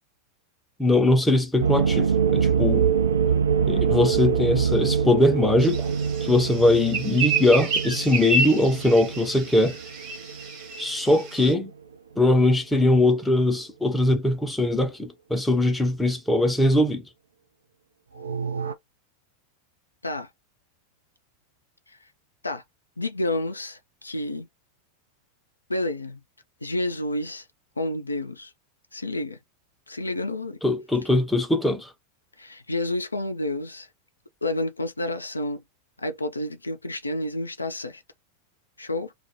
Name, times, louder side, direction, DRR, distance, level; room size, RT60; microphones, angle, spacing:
voice 1, 0.8-2.9 3.7-5.9 6.2-9.8 10.8-11.7 12.2-17.0 30.6-31.9, left 1 dB, 5° left, 0.6 m, -21 dB
sound 1, 1.6-11.1 11.4-11.5 11.7-11.8 18.2-18.7, right 6 dB, 70° right, 0.4 m, -25 dB
sound 2, 5.6-11.5, right 3 dB, 40° right, 1.0 m, -30 dB
voice 2, 23.0-24.5 25.7-26.2 26.6-27.4 27.8-28.5 28.9-29.4 29.9-30.6 32.4-33.9 34.4-35.6 36.0-38.0 38.8-39.1, left 1 dB, 80° left, 0.4 m, -29 dB
2.3 x 2.0 x 2.8 m
figure-of-eight pair, 90°, 0 cm